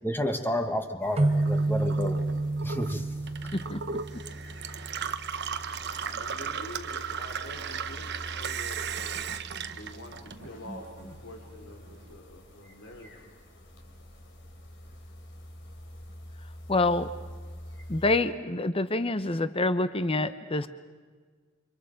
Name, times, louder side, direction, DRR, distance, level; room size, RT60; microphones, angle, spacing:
voice 1, 0.0-2.2 2.6-3.0, left 1 dB, 10° left, 6 dB, 1.4 m, -30 dB
sound 1, 1.0-18.2, equal, 60° left, 3.9 m, -46 dB
sound 2, 1.2-4.7, right 2 dB, 30° right, 0.7 m, -29 dB
Gurgling / Water tap faucet / Sink (filling or washing), 1.3-10.8 11.1-12.0, right 7 dB, 55° right, 1.0 m, -36 dB
voice 2, 6.0-9.2 9.7-13.3, left 1 dB, 85° left, 2 dB, 3.6 m, -46 dB
voice 3, 16.7-17.1 17.9-20.7, left 2 dB, 25° left, 12 dB, 0.8 m, -26 dB
30.0 x 26.0 x 5.2 m, 1.5 s
head